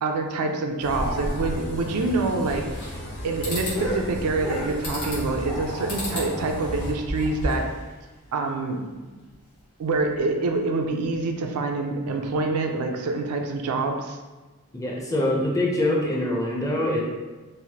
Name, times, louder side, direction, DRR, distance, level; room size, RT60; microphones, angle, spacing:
voice 1, 0.0-2.6 3.2-7.7 8.3-8.8 9.8-14.2, right 3 dB, 75° right, 3 dB, 0.4 m, -26 dB
sound 1, 0.8-6.9, equal, 55° left, 0.7 m, -33 dB
sound 2, 2.3-5.8 6.1-8.0 8.3-8.4 8.7-8.8 9.2-9.3 9.9-10.2 11.0-11.2, left 1 dB, 70° left, 1.0 m, -36 dB
sound 3, 2.4-3.1 3.4-3.8 4.8-5.3 5.9-6.3 6.7-7.7, equal, 90° left, 1.2 m, -32 dB
voice 2, 14.7-17.0, left 1 dB, 15° left, -2 dB, 0.4 m, -24 dB
3.1 x 2.1 x 2.8 m, 1.2 s
head